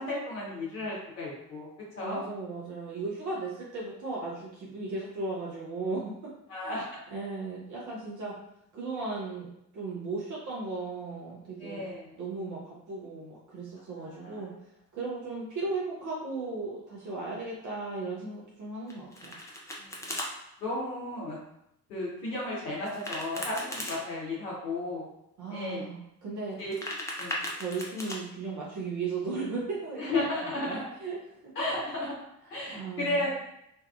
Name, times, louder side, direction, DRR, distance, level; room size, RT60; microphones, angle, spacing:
voice 1, 0.0-1.7 2.0-2.2 6.5-7.0 11.6-12.1 14.0-14.5 19.8-20.2 20.6-21.4 21.9-25.1 25.5-25.9 26.6-26.7 27.2-27.3 30.0-30.8 31.6-32.1 32.5-33.5, left 2 dB, 75° left, -7 dB, 0.7 m, -34 dB
voice 2, 2.0-6.1 6.6-6.8 7.1-8.3 8.7-11.9 12.2-14.5 14.9-19.4 25.4-26.6 27.6-30.3 30.5-31.2 32.7-33.3, right 3 dB, 40° right, -5 dB, 0.7 m, -36 dB
Domestic sounds home sounds, 18.9-20.3 22.8-24.0 26.5-28.2, left 1 dB, 5° left, 0.4 m, -37 dB
2.7 x 2.3 x 2.2 m, 0.80 s
figure-of-eight pair, 45°, 48 cm